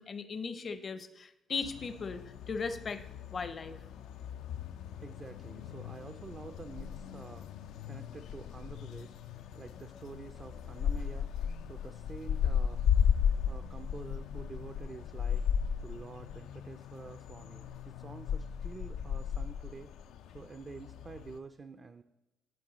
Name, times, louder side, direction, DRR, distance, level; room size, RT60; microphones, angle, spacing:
voice 1, 0.0-3.0 3.3-3.8, left 5 dB, 45° left, 11 dB, 0.6 m, -38 dB
sound 1, 1.6-21.4, left 8 dB, 85° left, 0.3 m, -35 dB
voice 2, 5.0-7.5 7.9-9.2 9.5-11.3 11.7-12.8 13.5-15.4 15.8-19.9 20.3-22.0, right 4 dB, 40° right, 7 dB, 0.4 m, -48 dB
10.5 x 4.6 x 3.9 m, 1.0 s
cardioid pair, 90°, 0 cm